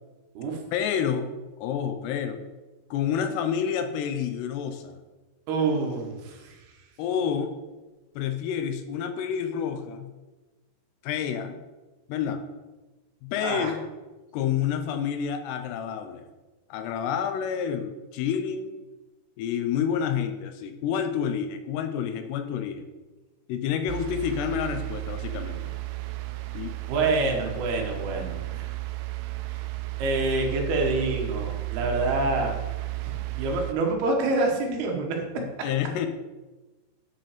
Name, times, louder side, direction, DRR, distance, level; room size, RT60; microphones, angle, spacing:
voice 1, 0.7-1.3 1.6-2.4 2.9-5.0 7.0-7.5 8.2-10.2 11.0-11.6 12.1-12.4 13.2-13.8 14.3-16.2 16.7-18.8 19.4-22.9 23.5-25.7 26.5-26.8 35.4-36.1, left 8 dB, 80° left, 8 dB, 2.5 m, -29 dB
voice 2, 5.5-6.5 13.4-13.7 26.9-28.6 30.0-32.5 33.0-35.2, right 2 dB, 65° right, 1 dB, 3.2 m, -27 dB
sound 1, 23.9-33.7, right 21 dB, 85° right, 2.8 m, -33 dB
10.0 x 6.0 x 5.0 m, 1.2 s
omnidirectional pair, 5.3 m